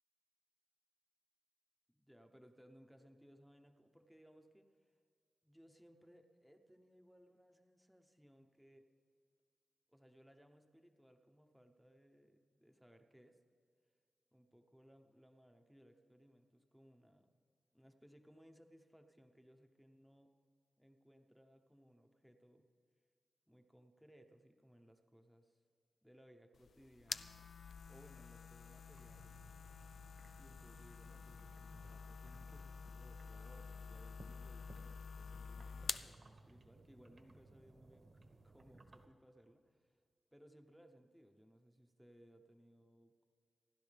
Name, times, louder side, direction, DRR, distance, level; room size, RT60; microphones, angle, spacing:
voice 1, 1.9-5.0 5.4-8.9 9.9-13.4 14.3-17.3 17.7-20.3 20.8-22.7 23.5-25.6 26.0-27.5 27.9-29.4 30.3-40.0 40.3-43.3, equal, ahead, 4 dB, 0.8 m, -65 dB
sound 1, 26.5-36.1, left 5 dB, 65° left, 0.4 m, -49 dB
sound 2, 28.9-39.1, right 2 dB, 45° right, 1.2 m, -63 dB
27.5 x 12.0 x 3.4 m, 2.2 s
wide cardioid pair, 170°, 0 cm